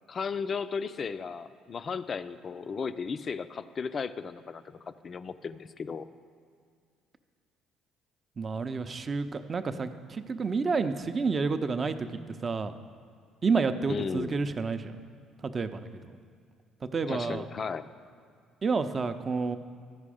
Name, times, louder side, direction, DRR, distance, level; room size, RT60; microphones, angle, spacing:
voice 1, 0.1-6.1 13.9-14.4 17.1-17.9, left 5 dB, 45° left, 12 dB, 0.4 m, -35 dB
voice 2, 8.4-12.1 12.4-12.7 13.4-14.9 15.4-16.2 16.9-17.4 18.6-19.6, right 4 dB, 40° right, 10 dB, 0.5 m, -29 dB
13.5 x 5.2 x 4.9 m, 2.2 s
hypercardioid pair, 65°, 0 cm